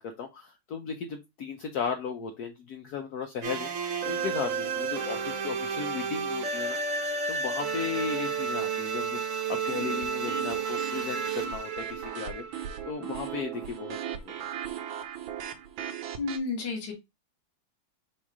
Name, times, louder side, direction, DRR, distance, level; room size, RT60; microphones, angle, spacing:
voice 1, 0.0-6.8 7.3-14.5, left 6 dB, 75° left, 5 dB, 0.9 m, -36 dB
sound 1, 3.4-13.3, right 5 dB, 55° right, 0.9 m, -32 dB
sound 2, 9.7-16.4, right 9 dB, 75° right, 1.4 m, -38 dB
voice 2, 16.2-16.9, left 4 dB, 60° left, -1 dB, 2.1 m, -31 dB
4.4 x 2.4 x 4.7 m, 0.22 s
omnidirectional pair, 2.3 m